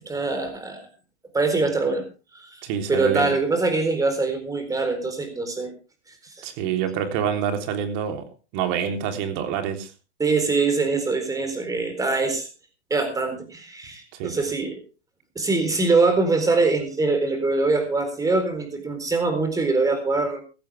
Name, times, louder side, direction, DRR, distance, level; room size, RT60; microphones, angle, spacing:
voice 1, 0.1-0.9 1.3-2.0 2.3-2.6 2.9-5.7 10.2-12.5 12.9-14.8 15.4-20.4, right 3 dB, 10° right, 7 dB, 4.1 m, -23 dB
voice 2, 2.6-3.3 6.4-8.3 8.5-9.9 14.2-14.4, right 8 dB, 45° right, 6 dB, 3.5 m, -26 dB
16.5 x 14.5 x 3.5 m, 0.33 s
supercardioid pair, 145°, 34 cm